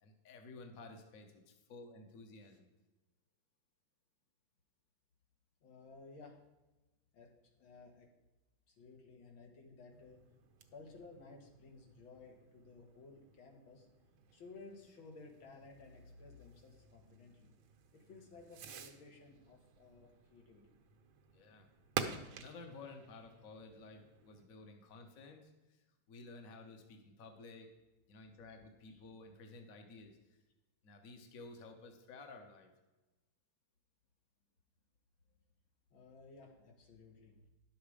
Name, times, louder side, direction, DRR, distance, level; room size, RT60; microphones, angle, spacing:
voice 1, 0.0-2.7 21.3-21.7 22.4-27.7 28.1-30.4 30.8-32.7, left 3 dB, 50° left, 5 dB, 1.4 m, -54 dB
voice 2, 5.6-6.4 7.1-7.3 7.6-8.1 8.7-10.2 10.7-13.9 14.3-17.6 17.9-20.7 28.9-29.0 35.9-37.4, left 3 dB, 80° left, 1 dB, 2.4 m, -56 dB
Fireworks, 9.9-24.5, right 7 dB, 80° right, 1.7 m, -50 dB
11.0 x 7.1 x 4.9 m, 1.1 s
omnidirectional pair, 2.2 m